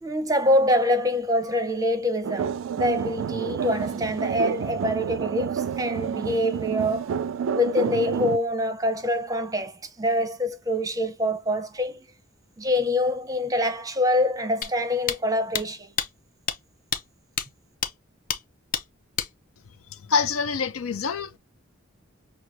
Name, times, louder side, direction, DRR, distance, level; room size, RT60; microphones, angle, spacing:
voice 1, 0.0-7.1 7.5-12.1 12.6-15.9, left 1 dB, 15° right, 0.6 m, -25 dB
sound 1, 2.2-8.4, right 7 dB, 75° right, 0.3 m, -29 dB
sound 2, 14.6-14.7 15.1-15.2 15.5-15.6 16.0-16.1 16.5-16.6 16.9-17.0 17.4-17.5 17.8-17.9 18.3-18.4 18.7-18.8 19.2-19.3, left 8 dB, 40° left, 0.5 m, -27 dB
voice 2, 20.1-21.4, left 5 dB, 85° left, 0.6 m, -25 dB
6.0 x 2.3 x 2.6 m
head